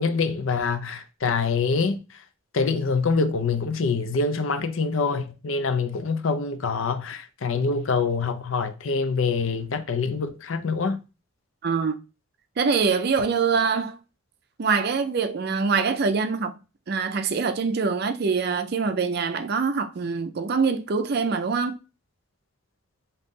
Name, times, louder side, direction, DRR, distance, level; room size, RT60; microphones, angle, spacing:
voice 1, 0.0-2.0 2.5-11.0, left 4 dB, 75° left, 0.5 m, -25 dB
voice 2, 11.6-12.0 12.6-14.0 14.6-16.6 16.9-21.8, right 5 dB, 50° right, 0.4 m, -24 dB
3.9 x 2.8 x 3.6 m
head